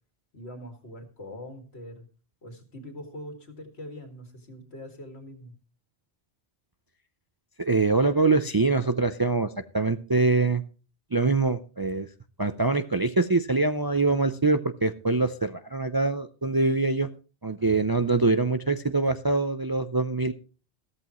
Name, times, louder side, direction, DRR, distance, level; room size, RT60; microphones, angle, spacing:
voice 1, 0.3-2.1 2.4-5.5 17.6-18.1, left 1 dB, 80° left, 5 dB, 2.4 m, -43 dB
voice 2, 7.6-10.6 11.1-12.1 12.4-17.1 17.4-20.3, right 3 dB, 30° right, 9 dB, 0.4 m, -24 dB
14.0 x 14.0 x 3.0 m, 0.35 s
omnidirectional pair, 1.1 m